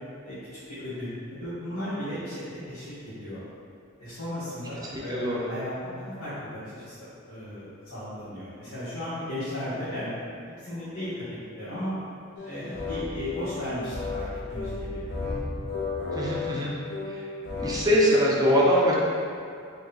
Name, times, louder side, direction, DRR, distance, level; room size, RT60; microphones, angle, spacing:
voice 1, 0.7-3.4 4.0-10.1 10.6-11.3 11.6-11.9 12.4-15.4, left 1 dB, 90° left, -15 dB, 1.2 m, -35 dB
voice 2, 4.9-5.5 16.1-16.7 17.1-17.3 17.6-18.9, equal, 20° right, -5 dB, 0.5 m, -23 dB
sound 1, 12.4-17.8, left 3 dB, 55° left, 0.7 m, -33 dB
3.0 x 2.8 x 4.0 m, 2.4 s
head